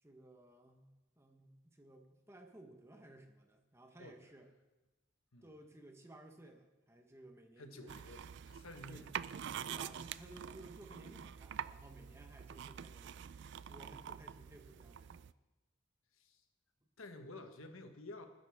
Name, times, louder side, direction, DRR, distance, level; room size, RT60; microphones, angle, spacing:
voice 1, 0.0-4.5 5.4-8.4 8.9-9.1 9.6-13.3 13.7-15.3, right 1 dB, 15° right, 4 dB, 1.2 m, -57 dB
voice 2, 7.6-9.1 16.1-16.4 17.0-18.3, left 2 dB, 85° left, 6 dB, 1.3 m, -51 dB
sound 1, 7.9-15.3, right 8 dB, 60° right, 0.3 m, -46 dB
19.5 x 10.5 x 3.6 m, 1.1 s
head